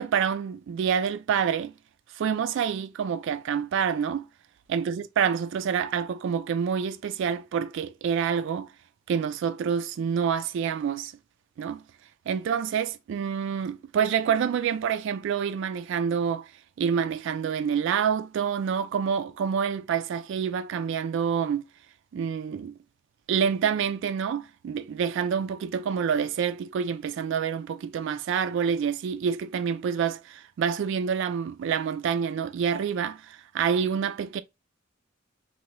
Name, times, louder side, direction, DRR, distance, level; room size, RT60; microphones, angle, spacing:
voice 1, 0.0-1.7 2.1-4.3 4.7-8.7 9.1-11.1 11.6-11.8 12.3-16.5 16.8-21.7 22.1-22.8 23.3-34.4, right 7 dB, 65° right, 0.3 m, -27 dB
2.9 x 2.2 x 3.0 m
head